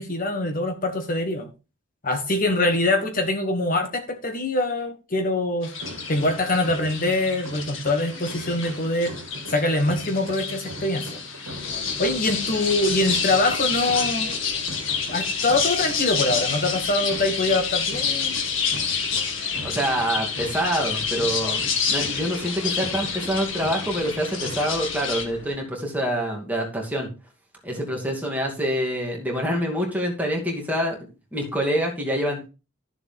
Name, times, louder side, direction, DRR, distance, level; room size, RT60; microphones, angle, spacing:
voice 1, 0.0-1.5 2.0-5.7 6.1-9.1 9.5-11.2 12.0-14.3 15.1-18.4, left 2 dB, 40° left, 6 dB, 1.2 m, -24 dB
sound 1, 5.6-25.2, left 6 dB, 65° left, 2.1 m, -28 dB
sound 2, 5.8-24.6, right 1 dB, 75° right, 1.9 m, -40 dB
sound 3, 11.5-25.6, left 1 dB, 85° left, 2.8 m, -43 dB
voice 2, 19.6-27.1 27.6-31.0 31.3-32.5, equal, 10° right, 0 dB, 2.4 m, -26 dB
13.0 x 6.9 x 3.6 m, 0.31 s
head